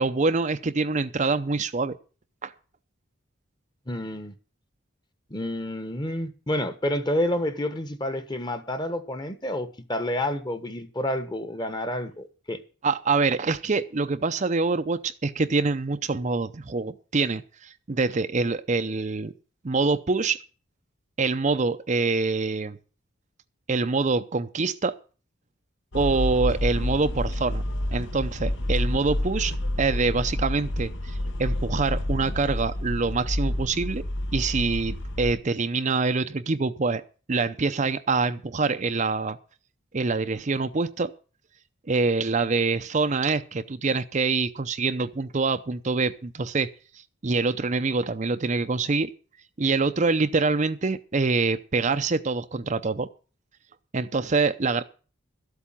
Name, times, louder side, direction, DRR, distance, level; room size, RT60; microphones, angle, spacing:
voice 1, 0.0-1.9 2.4-2.5 12.8-19.3 19.6-20.4 21.2-22.8 23.7-24.9 25.9-27.6 27.9-34.0 34.3-37.0 37.3-39.4 39.9-41.1 41.9-46.7 47.2-49.1 49.6-53.1 53.9-54.8, right 4 dB, 35° right, 0.6 m, -25 dB
voice 2, 3.9-4.3 5.3-12.6, left 1 dB, 20° left, 1.2 m, -29 dB
sound 1, 25.9-35.4, left 1 dB, 60° left, 1.1 m, -29 dB
13.0 x 8.3 x 7.5 m
head